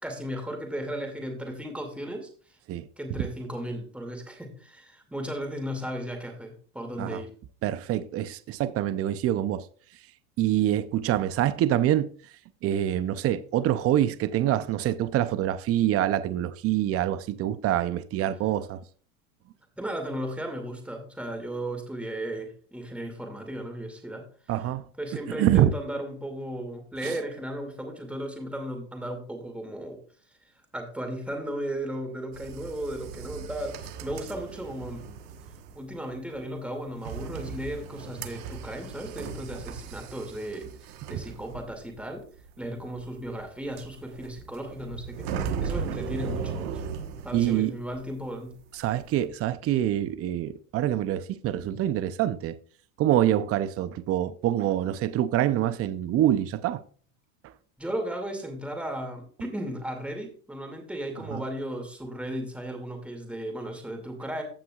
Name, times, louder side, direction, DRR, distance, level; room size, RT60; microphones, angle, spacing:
voice 1, 0.0-2.6 3.0-7.3 19.8-24.3 25.0-30.0 30.7-35.1 35.7-42.2 42.6-46.8 47.2-48.6 57.8-64.4, right 1 dB, 5° right, 2.4 m, -35 dB
voice 2, 7.6-9.6 10.4-12.1 12.6-18.8 24.5-24.8 25.3-25.7 27.0-27.1 41.1-41.2 47.3-47.7 48.8-52.6 53.0-56.8 61.3-61.4, right 12 dB, 30° right, 0.6 m, -25 dB
sound 1, 32.3-48.3 48.5-49.3, right 6 dB, 75° right, 1.4 m, -37 dB
15.5 x 5.8 x 2.4 m
supercardioid pair, 120°, 46 cm